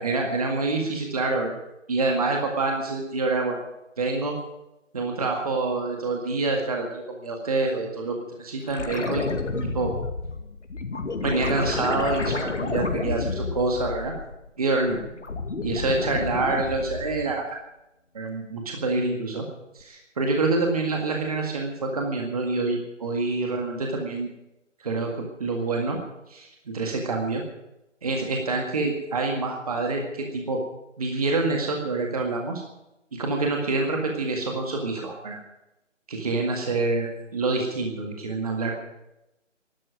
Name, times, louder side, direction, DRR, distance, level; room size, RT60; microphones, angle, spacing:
voice 1, 0.0-1.6 1.9-3.6 4.0-4.4 4.9-9.4 9.7-9.9 11.2-14.1 14.6-15.0 15.6-17.6 18.1-19.4 19.7-24.3 24.8-26.0 26.3-27.4 28.0-30.6 31.0-32.6 33.1-35.4 36.1-38.7, right 3 dB, 30° right, 1 dB, 1.9 m, -26 dB
sound 1, 8.7-14.5 14.9-17.4 19.8-19.9, left 3 dB, 65° left, 2.4 m, -30 dB
12.5 x 12.0 x 9.3 m, 0.91 s
figure-of-eight pair, 170°, 38 cm